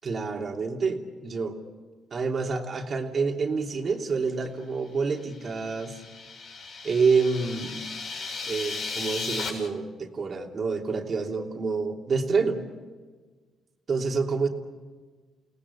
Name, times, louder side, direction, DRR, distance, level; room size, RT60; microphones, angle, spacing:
voice 1, 0.0-1.6 2.1-6.0 6.8-7.8 8.5-12.6 13.9-14.5, right 4 dB, 45° right, 2 dB, 3.0 m, -27 dB
sound 1, 5.3-9.5, left 4 dB, 70° left, 6.9 m, -36 dB
29.5 x 18.0 x 8.5 m, 1.4 s
cardioid pair, 90°, 0 cm